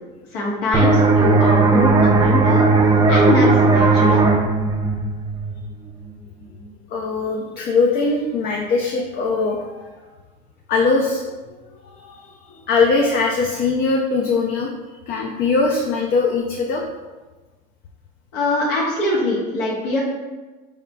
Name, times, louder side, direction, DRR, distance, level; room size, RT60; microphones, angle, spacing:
voice 1, 0.3-2.7 3.1-4.2 18.3-20.0, left 1 dB, 85° left, -4 dB, 1.3 m, -22 dB
sound 1, 0.7-6.1, right 3 dB, 20° right, 0.5 m, -16 dB
voice 2, 6.9-9.8 10.7-11.3 11.9-14.7 15.1-16.8, left 4 dB, 45° left, 0 dB, 0.5 m, -21 dB
4.3 x 3.6 x 2.2 m, 1.2 s
supercardioid pair, 115°, 21 cm